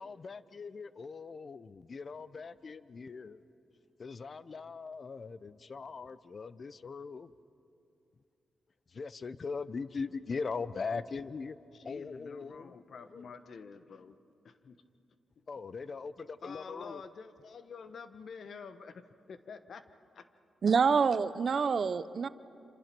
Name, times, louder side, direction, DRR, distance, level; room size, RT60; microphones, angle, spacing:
voice 1, 0.0-3.4 4.0-7.3 8.9-11.6 11.8-13.3 15.5-17.0, left 4 dB, 50° left, 16 dB, 0.8 m, -40 dB
voice 2, 11.7-14.2 14.4-14.8 16.4-19.8 20.1-20.3, left 5 dB, 65° left, 11 dB, 1.2 m, -48 dB
voice 3, 20.6-22.3, right 5 dB, 60° right, 15 dB, 0.8 m, -27 dB
27.5 x 27.0 x 6.1 m, 2.6 s
cardioid pair, 65°, 0 cm